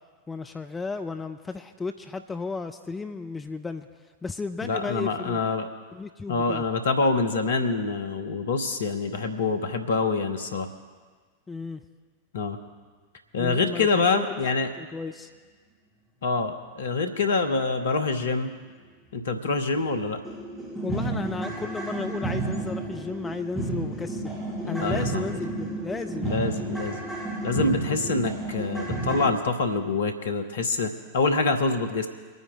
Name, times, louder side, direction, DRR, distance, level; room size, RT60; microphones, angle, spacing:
voice 1, 0.3-3.9 4.2-5.4 5.9-6.6 11.5-11.8 13.4-14.4 14.8-15.3 20.8-26.4, left 4 dB, 15° left, 7 dB, 0.7 m, -34 dB
voice 2, 4.6-5.7 6.3-10.7 12.3-12.6 13.3-14.7 16.2-18.5 19.1-20.2 24.6-25.2 26.2-27.0 27.4-32.1, left 3 dB, 65° left, 7 dB, 1.2 m, -26 dB
sound 1, 20.2-29.3, right 2 dB, 5° right, 2.0 m, -31 dB
24.5 x 9.5 x 3.8 m, 1.5 s
figure-of-eight pair, 90°, 0 cm